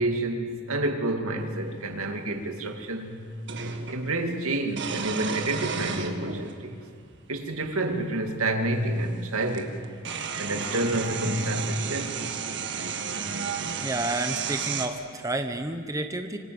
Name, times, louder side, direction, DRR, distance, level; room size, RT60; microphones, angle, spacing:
voice 1, 0.0-3.3 3.9-6.8 7.3-9.8 10.4-12.2, right 2 dB, 80° right, 2.6 m, -29 dB
sound 1, 1.8-1.9 3.5-4.0 4.7-6.5 7.5-7.6 9.1-9.2 9.5-14.9, right 5 dB, 55° right, 2.0 m, -32 dB
voice 2, 13.8-16.4, right 2 dB, 15° right, 1.1 m, -30 dB
26.5 x 25.0 x 8.0 m
head